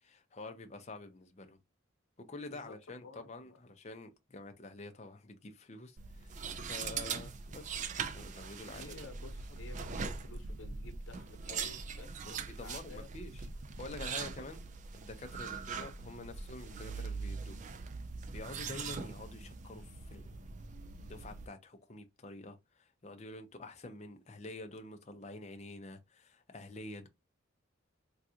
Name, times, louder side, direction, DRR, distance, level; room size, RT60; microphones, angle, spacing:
voice 1, 0.0-1.6 2.2-7.7 8.1-8.9 12.2-13.4 13.8-14.6 14.9-17.7 18.3-20.3 21.0-27.1, left 2 dB, 35° left, 0.6 m, -48 dB
voice 2, 3.0-3.6 8.7-13.1 14.4-14.5, left 3 dB, 80° left, 1.0 m, -52 dB
sound 1, 6.0-21.5, right 5 dB, 40° right, 0.3 m, -42 dB
3.6 x 2.3 x 2.8 m
head